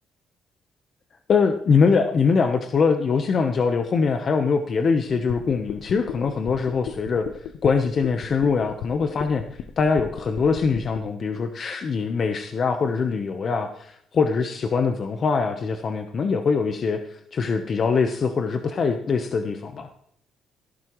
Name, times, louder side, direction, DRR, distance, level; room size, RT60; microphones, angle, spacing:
voice 1, 1.3-7.3 7.6-9.4 9.8-19.9, left 5 dB, 50° left, 7 dB, 1.0 m, -23 dB
sound 1, 5.1-11.0, left 9 dB, 85° left, 0.9 m, -35 dB
15.0 x 12.0 x 3.1 m, 0.71 s
cardioid pair, 90°, 0 cm